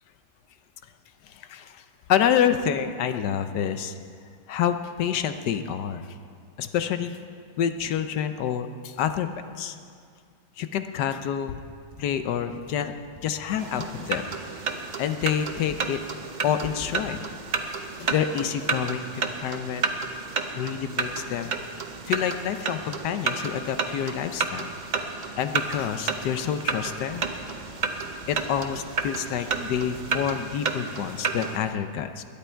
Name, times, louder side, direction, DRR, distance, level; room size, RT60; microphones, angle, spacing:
voice 1, 1.2-1.8 2.1-4.0 4.5-6.1 6.6-7.2 7.6-9.3 9.6-9.8 10.6-11.6 12.0-12.9 13.2-14.3 15.0-16.0 16.4-17.2 18.0-19.8 20.5-21.5 22.1-24.7 25.4-27.2 28.3-32.2, left 9 dB, 85° left, 9 dB, 1.3 m, -28 dB
Computer keyboard, 11.9-14.6 15.3-15.9 16.3-16.4 16.6-17.0, right 2 dB, 20° right, 2.5 m, -47 dB
sound 1, 12.1-30.3, left 1 dB, 30° left, 1.9 m, -51 dB
sound 2, 13.6-31.6, right 4 dB, 50° right, 0.5 m, -31 dB
20.5 x 10.5 x 4.5 m, 2.2 s
omnidirectional pair, 1.8 m